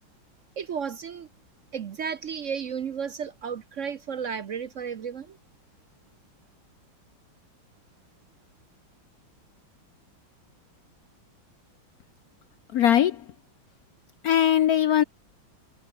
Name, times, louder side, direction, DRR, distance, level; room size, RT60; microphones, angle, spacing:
voice 1, 0.6-1.3 1.7-5.4, right 7 dB, 60° right, 0.8 m, -33 dB
voice 2, 12.7-13.2 14.2-15.0, left 10 dB, 70° left, 0.9 m, -20 dB
omnidirectional pair, 2.3 m